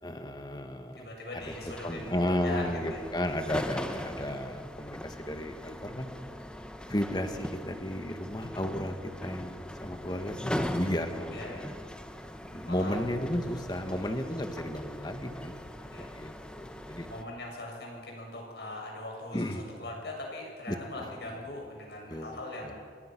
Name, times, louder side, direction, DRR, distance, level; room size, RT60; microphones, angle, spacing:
voice 1, 0.0-1.1 1.3-1.5 1.8-6.1 6.9-11.4 12.5-17.1 19.3-19.6 20.7-21.3 22.1-22.7, left 1 dB, 25° left, 6 dB, 1.8 m, -34 dB
voice 2, 1.0-3.0 11.3-11.7 12.6-13.0 14.0-14.2 15.9-16.1 17.1-22.9, left 1 dB, 70° left, 0 dB, 7.2 m, -41 dB
sound 1, 1.4-17.2, equal, 5° left, 1.1 m, -40 dB
27.5 x 23.0 x 6.2 m, 2.1 s
head